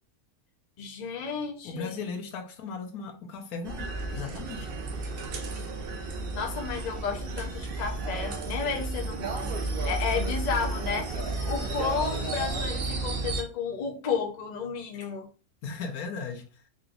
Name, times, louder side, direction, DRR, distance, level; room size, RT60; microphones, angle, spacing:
voice 1, 0.8-2.1 6.3-9.5 9.8-11.1 11.4-15.3, left 6 dB, 40° left, 0.6 m, -32 dB
voice 2, 1.6-4.7 15.6-16.6, left 4 dB, 85° left, 1.2 m, -37 dB
sound 1, 3.6-13.4, right 3 dB, 55° right, 0.6 m, -32 dB
3.8 x 3.1 x 2.5 m
omnidirectional pair, 1.5 m